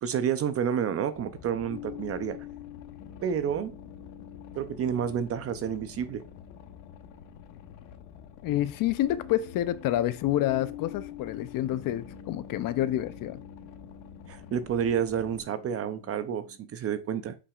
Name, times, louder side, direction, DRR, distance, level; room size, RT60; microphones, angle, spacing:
voice 1, 0.0-2.4 3.2-3.8 4.6-6.2 14.3-17.3, right 8 dB, 30° right, 0.5 m, -29 dB
Boat Water vehicle, 1.1-15.4, left 9 dB, 85° left, 1.2 m, -49 dB
sound 1, 1.5-16.6, left 9 dB, 65° left, 1.3 m, -47 dB
voice 2, 8.4-13.4, left 13 dB, 45° left, 0.5 m, -28 dB
7.9 x 5.9 x 2.3 m
cardioid pair, 130°, 49 cm